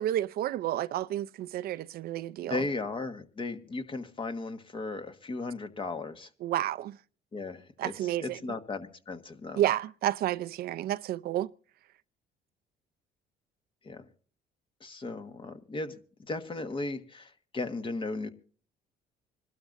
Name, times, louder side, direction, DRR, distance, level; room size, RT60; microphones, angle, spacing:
voice 1, 0.0-2.6 6.4-7.0 7.8-8.4 9.6-11.5, right 13 dB, 65° right, 0.6 m, -30 dB
voice 2, 2.4-6.3 7.3-9.6 13.8-14.0 14.8-15.9 16.3-18.3, left 3 dB, 30° left, 1.5 m, -36 dB
26.0 x 12.5 x 2.6 m
cardioid pair, 110°, 17 cm